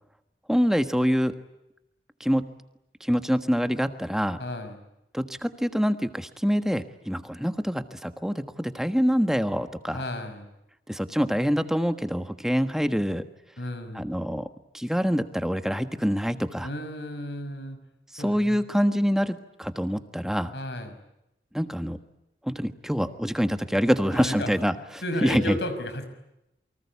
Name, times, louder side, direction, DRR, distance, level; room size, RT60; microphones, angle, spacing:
voice 1, 0.5-1.3 2.2-2.5 3.0-4.4 5.1-10.0 10.9-13.2 13.9-14.5 14.7-16.7 18.2-20.5 21.5-22.0 22.5-24.7 25.2-25.6, equal, 5° right, 8 dB, 1.4 m, -25 dB
voice 2, 4.4-4.8 9.9-10.5 13.6-14.0 16.6-17.8 18.2-18.6 20.5-21.0 24.1-24.5 25.0-26.1, left 1 dB, 80° left, 9 dB, 5.8 m, -33 dB
29.0 x 24.5 x 8.4 m, 0.88 s
head